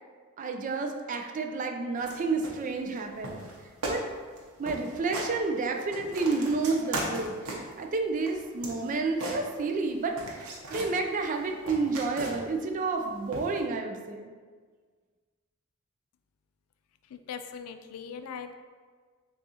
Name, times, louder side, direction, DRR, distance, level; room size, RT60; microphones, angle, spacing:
voice 1, 0.4-3.4 3.9-4.0 4.6-7.3 7.8-10.1 10.7-14.3, right 3 dB, 35° right, 3 dB, 0.3 m, -30 dB
sound 1, 2.0-2.2 2.4-3.0 3.2-3.6 3.8-4.0 4.3-4.4 4.7-5.3 5.7-7.8 8.2-9.9 10.2-10.9 11.3-12.6 13.3-13.6, right 1 dB, 75° right, 0.8 m, -37 dB
voice 2, 17.1-18.5, left 6 dB, 85° left, 8 dB, 0.3 m, -40 dB
6.3 x 2.4 x 2.8 m, 1.6 s
head